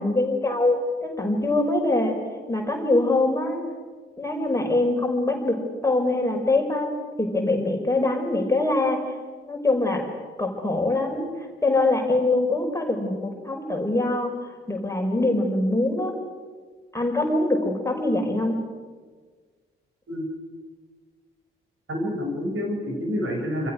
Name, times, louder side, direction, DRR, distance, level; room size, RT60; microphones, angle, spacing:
voice 1, 0.0-2.1 2.5-3.6 4.2-5.5 5.8-6.9 7.2-9.0 9.4-10.0 10.4-11.2 11.6-14.3 14.7-16.1 16.9-18.6, left 2 dB, 10° left, 2 dB, 6.0 m, -23 dB
voice 2, 21.9-23.7, equal, 45° right, 2 dB, 7.0 m, -28 dB
29.0 x 26.0 x 6.5 m, 1.5 s
figure-of-eight pair, 40°, 30 cm